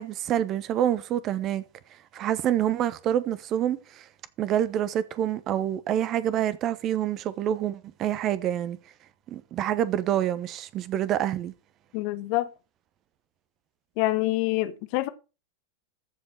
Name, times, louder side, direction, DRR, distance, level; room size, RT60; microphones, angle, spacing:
voice 1, 0.0-1.6 2.1-4.0 4.4-8.8 9.3-11.5, right 11 dB, 35° right, 1.0 m, -27 dB
voice 2, 11.9-12.5 14.0-15.1, left 18 dB, 45° left, 1.2 m, -26 dB
14.5 x 5.4 x 6.3 m
figure-of-eight pair, 90°, 0 cm